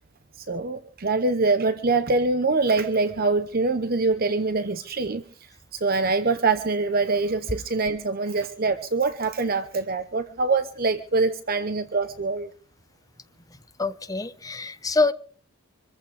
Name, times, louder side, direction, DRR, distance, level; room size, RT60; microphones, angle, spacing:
voice 1, 0.4-12.5, right 3 dB, 50° right, 0.9 m, -24 dB
voice 2, 13.8-15.1, left 3 dB, 15° left, 0.9 m, -25 dB
25.5 x 14.5 x 3.5 m
head